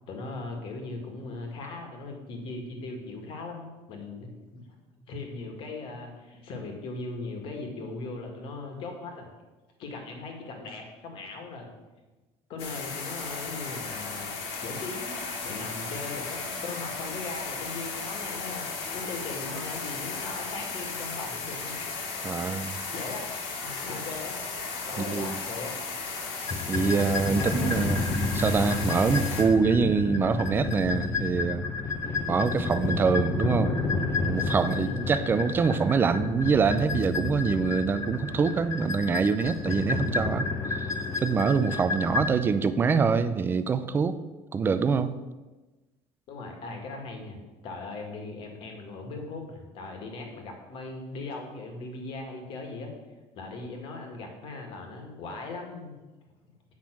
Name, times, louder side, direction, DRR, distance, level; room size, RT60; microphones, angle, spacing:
voice 1, 0.1-4.3 5.0-9.3 9.8-11.7 12.5-14.3 14.6-18.7 18.9-21.7 22.9-23.3 23.6-24.5 24.8-25.7 27.3-28.0 34.8-35.2 46.3-52.9 53.3-56.0, left 3 dB, 50° left, 3 dB, 1.8 m, -39 dB
sound 1, 12.6-29.4, left 4 dB, 65° left, 1.9 m, -35 dB
voice 2, 22.2-22.8 25.0-25.4 26.7-28.0 28.3-31.6 32.3-33.8 34.3-40.9 41.2-44.2 44.5-45.1, right 5 dB, 20° right, 12 dB, 0.4 m, -25 dB
sound 2, 26.5-42.3, left 4 dB, 25° left, 0.9 m, -30 dB
8.8 x 5.8 x 6.1 m, 1.2 s
cardioid pair, 175°, 12 cm